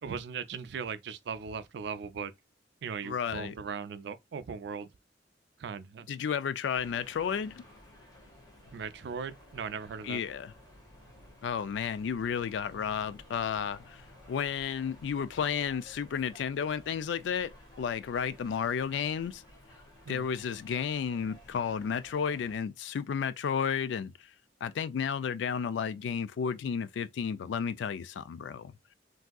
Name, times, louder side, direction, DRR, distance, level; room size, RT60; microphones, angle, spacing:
voice 1, 0.0-2.3 2.8-4.9 5.6-6.1 8.7-10.2 20.0-20.2, right 6 dB, 70° right, 0.4 m, -38 dB
voice 2, 3.0-3.5 6.1-7.6 10.0-10.5 11.4-14.0 14.3-19.4 20.1-24.3 24.6-28.7, left 7 dB, 80° left, 0.3 m, -32 dB
sound 1, 6.7-22.6, left 1 dB, 20° left, 1.3 m, -55 dB
3.5 x 2.6 x 2.3 m
head